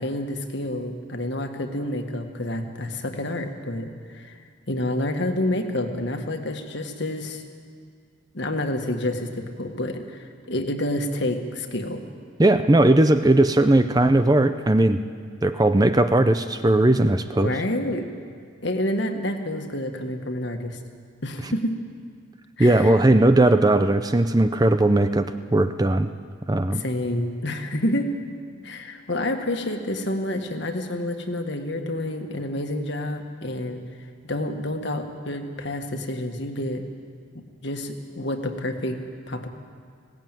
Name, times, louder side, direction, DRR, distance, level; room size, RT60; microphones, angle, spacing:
voice 1, 0.0-4.4 4.7-7.4 8.3-12.0 17.4-18.1 18.6-20.8 21.2-21.8 22.6-23.0 26.7-28.1 28.6-33.8 34.2-36.8 37.6-39.0 39.3-39.5, left 1 dB, 55° left, 5 dB, 1.7 m, -28 dB
voice 2, 12.4-15.0 15.4-17.5 21.4-21.5 22.6-26.1 26.5-26.8, right 1 dB, 20° right, 10 dB, 0.5 m, -18 dB
19.0 x 17.5 x 9.1 m, 2.1 s
head